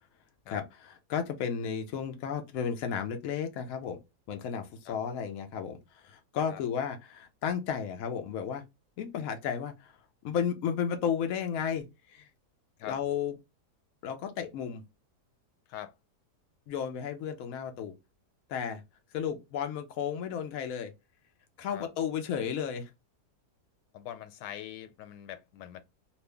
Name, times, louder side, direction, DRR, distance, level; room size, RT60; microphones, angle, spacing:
voice 1, 0.5-4.0 4.3-8.6 9.0-10.0 10.2-12.3 12.8-13.3 14.0-14.8 16.7-17.9 18.5-18.8 19.1-20.9 21.6-22.9, left 7 dB, 65° left, 1.0 m, -33 dB
voice 2, 23.9-25.8, left 11 dB, 90° left, 1.2 m, -43 dB
3.0 x 2.4 x 3.3 m
omnidirectional pair, 1.8 m